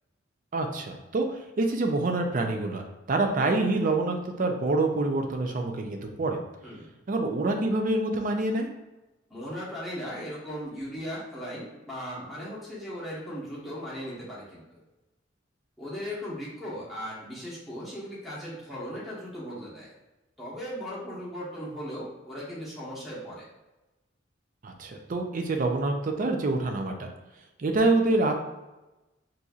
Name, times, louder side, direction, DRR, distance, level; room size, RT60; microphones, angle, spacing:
voice 1, 0.5-2.8 3.1-6.4 7.1-8.7 24.6-27.1 27.6-28.4, right 2 dB, 45° right, 4 dB, 0.4 m, -26 dB
voice 2, 9.3-14.8 15.8-19.9 20.4-23.4, equal, ahead, -7 dB, 1.1 m, -37 dB
4.2 x 2.6 x 2.4 m, 1.0 s
head